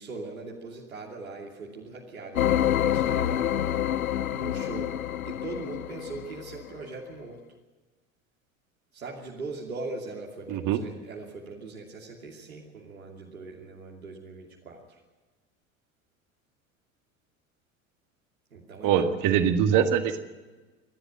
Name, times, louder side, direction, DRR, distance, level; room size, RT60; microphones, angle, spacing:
voice 1, 0.0-3.5 4.3-4.9 5.2-7.4 8.9-15.0 18.5-19.1, right 3 dB, 80° right, -2 dB, 2.8 m, -40 dB
sound 1, 2.4-6.7, left 11 dB, 80° left, 0.6 m, -27 dB
voice 2, 18.8-20.2, right 8 dB, 50° right, 8 dB, 2.0 m, -23 dB
27.0 x 11.0 x 9.2 m, 1.2 s
figure-of-eight pair, 75°, 41 cm